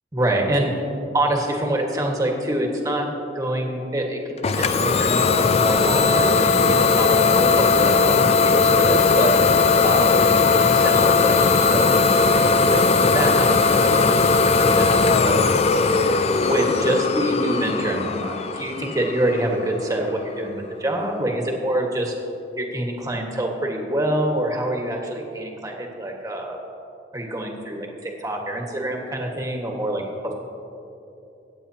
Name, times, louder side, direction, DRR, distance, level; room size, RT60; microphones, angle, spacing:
voice 1, 0.1-0.7 1.1-3.1 3.3-9.3 9.8-10.3 10.5-11.4 11.7-12.0 12.7-15.9 16.5-22.1 22.6-26.6 27.1-30.3, right 1 dB, 20° right, 1 dB, 1.5 m, -26 dB
Idling / Domestic sounds home sounds, 4.4-20.0, left 4 dB, 35° left, 0.4 m, -18 dB
22.5 x 9.0 x 2.8 m, 2.9 s
head